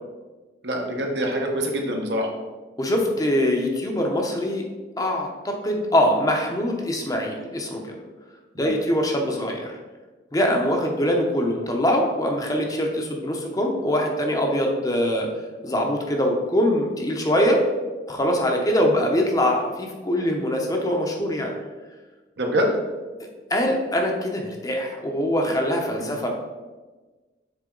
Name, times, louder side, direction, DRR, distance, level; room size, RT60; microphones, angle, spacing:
voice 1, 0.6-2.3 8.6-8.7 19.0-19.1 22.4-22.7 26.0-26.1, equal, 70° right, 1 dB, 1.1 m, -25 dB
voice 2, 2.8-4.6 5.0-7.9 8.6-9.8 10.3-15.3 15.6-17.6 18.1-21.5 23.2-26.3, equal, 20° left, 1 dB, 0.7 m, -23 dB
6.7 x 4.1 x 3.8 m, 1.3 s
head